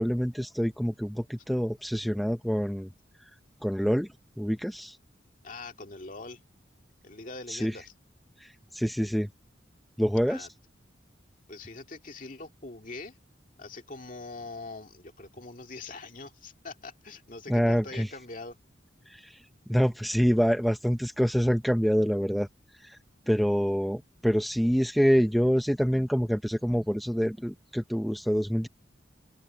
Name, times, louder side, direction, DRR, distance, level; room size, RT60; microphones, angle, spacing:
voice 1, 0.0-2.9 3.6-4.1 4.4-5.0 7.5-7.8 8.4-9.3 10.0-10.5 17.5-18.1 19.1-19.4 19.7-22.5 22.8-23.0 23.3-28.7, equal, ahead, 0.6 m, -26 dB
voice 2, 5.4-6.4 7.0-7.9 10.2-10.5 11.5-13.2 13.6-18.6, left 3 dB, 45° left, 2.2 m, -43 dB
open air
head